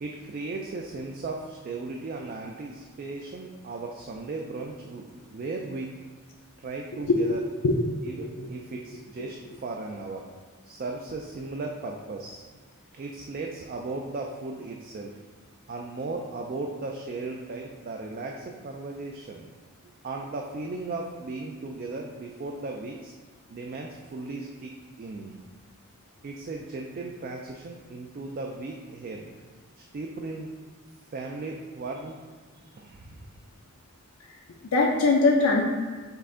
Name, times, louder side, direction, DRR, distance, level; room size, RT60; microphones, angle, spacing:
voice 1, 0.0-5.9 6.6-7.4 8.0-10.3 10.6-12.4 12.9-15.2 15.7-19.5 20.0-23.1 23.5-24.7 25.0-25.4 26.2-29.3 29.8-30.5 31.1-32.2 32.6-33.3, right 3 dB, 40° right, 0 dB, 0.3 m, -36 dB
voice 2, 8.0-8.5 34.7-35.6, left 3 dB, 80° left, -1 dB, 0.5 m, -22 dB
5.4 x 2.5 x 3.7 m, 1.5 s
head